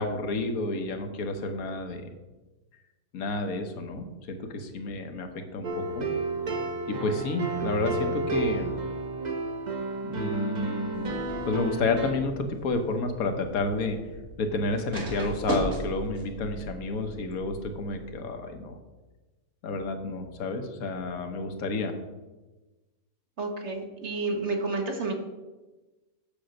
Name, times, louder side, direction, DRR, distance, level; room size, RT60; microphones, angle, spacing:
voice 1, 0.0-2.1 3.1-6.1 6.9-8.8 10.0-11.1 11.4-14.0 14.4-18.7 19.6-21.9, left 2 dB, 70° left, 6 dB, 1.5 m, -30 dB
sound 1, 5.6-12.1, right 3 dB, 35° right, 0.9 m, -31 dB
sound 2, 10.9-18.1, right 2 dB, 65° right, 2.2 m, -38 dB
voice 2, 23.4-25.1, right 3 dB, 50° right, 3 dB, 1.4 m, -30 dB
7.1 x 6.9 x 6.4 m, 1.2 s
omnidirectional pair, 1.6 m